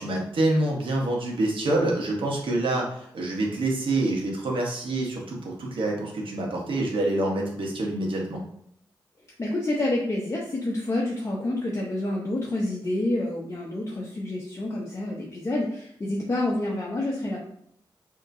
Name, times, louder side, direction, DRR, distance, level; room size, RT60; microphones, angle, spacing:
voice 1, 0.0-8.4, right 2 dB, 80° right, -1 dB, 1.1 m, -26 dB
voice 2, 9.4-17.5, left 1 dB, 35° left, -3 dB, 0.7 m, -28 dB
5.2 x 2.9 x 2.6 m, 0.71 s
wide cardioid pair, 105°, 9 cm